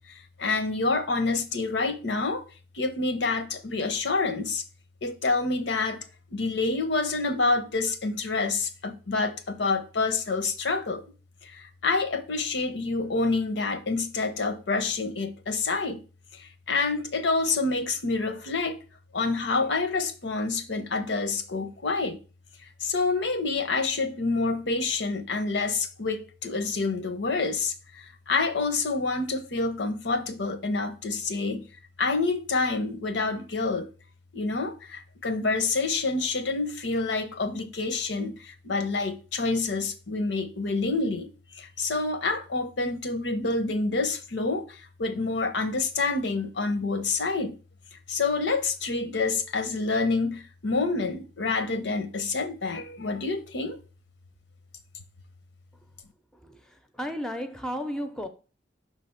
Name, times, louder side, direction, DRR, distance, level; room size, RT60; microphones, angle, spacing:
voice 1, 0.1-2.4 2.7-4.6 5.0-6.0 6.3-11.0 11.4-16.0 16.3-18.8 19.1-22.2 22.8-31.7 32.0-33.9 34.3-47.6 48.1-53.8, left 3 dB, 80° left, 0.8 m, -27 dB
voice 2, 56.3-58.3, equal, 5° left, 0.5 m, -34 dB
5.9 x 3.4 x 5.6 m
head